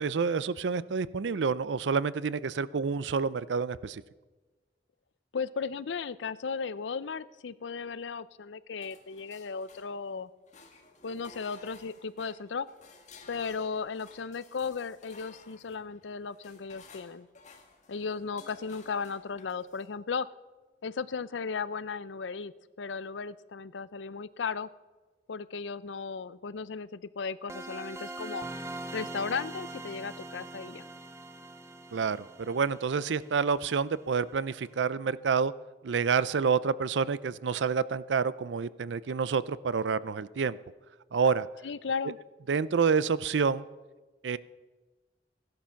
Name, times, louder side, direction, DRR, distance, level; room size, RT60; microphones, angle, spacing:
voice 1, 0.0-4.0 31.9-35.5 35.8-40.6 41.1-41.5 42.5-43.6 44.2-44.4, right 5 dB, 80° right, 18 dB, 0.5 m, -28 dB
voice 2, 5.3-10.3 11.0-12.7 13.3-17.3 17.9-20.3 20.8-22.5 22.8-24.7 25.3-28.5 28.9-30.9 41.6-42.2, left 5 dB, 90° left, 17 dB, 0.5 m, -35 dB
sound 1, 8.8-10.1 10.5-19.9, left 4 dB, 45° left, 2.0 m, -55 dB
sound 2, 27.5-34.2, right 2 dB, 15° right, 0.8 m, -42 dB
16.0 x 11.5 x 5.7 m, 1.2 s
head